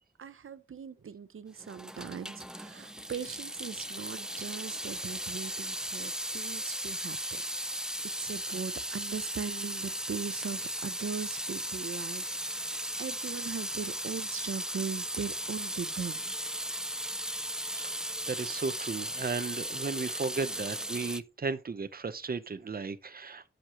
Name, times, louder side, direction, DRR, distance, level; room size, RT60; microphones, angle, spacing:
voice 1, 0.2-7.9 8.2-16.3, right 6 dB, 85° right, 0.7 m, -40 dB
Water tap faucet / Sink (filling or washing) / Drip, 1.6-21.2, right 1 dB, 5° right, 0.4 m, -36 dB
voice 2, 17.5-17.9 18.3-23.4, right 4 dB, 45° right, 0.8 m, -35 dB
10.0 x 6.6 x 3.0 m
wide cardioid pair, 95°, 21 cm